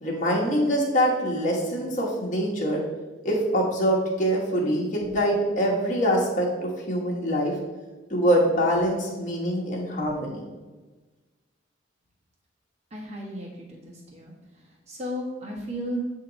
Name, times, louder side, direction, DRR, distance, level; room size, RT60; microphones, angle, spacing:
voice 1, 0.0-2.8 3.2-7.5 8.1-10.5, equal, 40° left, -3 dB, 1.2 m, -24 dB
voice 2, 12.9-14.3 14.9-16.0, equal, 35° right, -3 dB, 1.3 m, -34 dB
8.3 x 2.9 x 3.9 m, 1.2 s
head